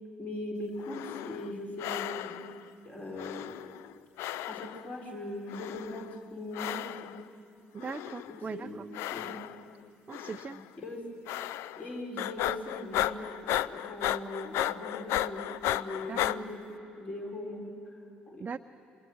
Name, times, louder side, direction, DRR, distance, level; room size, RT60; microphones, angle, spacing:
voice 1, 0.2-2.5 2.8-3.5 4.5-7.2 8.3-9.4 10.5-11.1 11.8-13.3 13.6-17.7 18.3-18.5, left 1 dB, 30° left, 0 dB, 4.3 m, -40 dB
sound 1, 0.8-1.5 1.8-2.6 3.2-4.9 5.5-6.1 6.5-7.2 7.8-8.4 8.9-9.7 10.1-10.6 11.3-11.9 12.2-16.4, left 13 dB, 60° left, 0.5 m, -34 dB
voice 2, 7.7-8.8 10.1-10.6 16.1-16.4 18.4-18.6, right 5 dB, 30° right, 9 dB, 0.5 m, -40 dB
27.5 x 24.5 x 6.4 m, 2.8 s
figure-of-eight pair, 50°, 5 cm